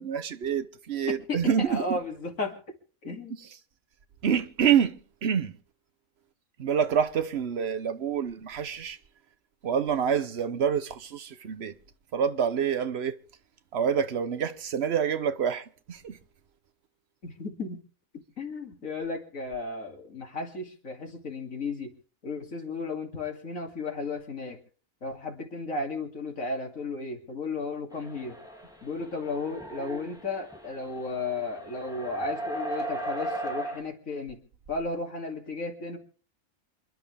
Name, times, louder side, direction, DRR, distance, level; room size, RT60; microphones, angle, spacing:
voice 1, 0.0-2.0 4.2-5.0 5.2-5.6 6.6-9.0 9.6-11.7 12.1-13.2 13.7-16.2, right 8 dB, 55° right, 1.1 m, -27 dB
voice 2, 1.3-2.6 3.0-3.4 17.2-17.8 18.4-21.9 22.2-24.6 25.0-28.3 28.8-34.4 34.7-36.0, left 3 dB, 75° left, 3.0 m, -34 dB
sound 1, 27.9-33.8, right 1 dB, 5° right, 2.7 m, -37 dB
27.5 x 11.0 x 3.5 m
omnidirectional pair, 1.4 m